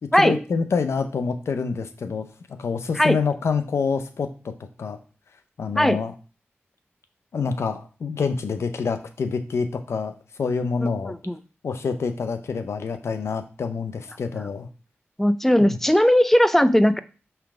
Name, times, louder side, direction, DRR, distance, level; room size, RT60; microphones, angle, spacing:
voice 1, 0.0-2.3 2.6-4.5 4.8-5.0 5.6-6.1 7.3-11.1 11.6-14.7 15.6-15.8, left 5 dB, 90° left, 8 dB, 0.6 m, -27 dB
voice 2, 10.8-11.4 15.2-17.0, equal, 5° left, 12 dB, 0.5 m, -18 dB
5.7 x 3.4 x 4.9 m, 0.36 s
cardioid pair, 50°, 4 cm